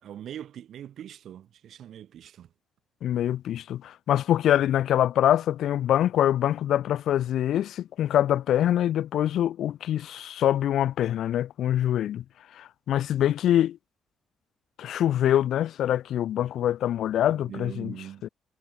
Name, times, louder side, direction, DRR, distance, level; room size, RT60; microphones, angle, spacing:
voice 1, 0.0-2.5 17.3-18.3, right 10 dB, 70° right, 4.1 m, -42 dB
voice 2, 3.0-12.2 12.5-13.8 14.8-17.9 18.2-18.3, left 11 dB, 75° left, 1.9 m, -24 dB
cardioid pair, 90°, 0 cm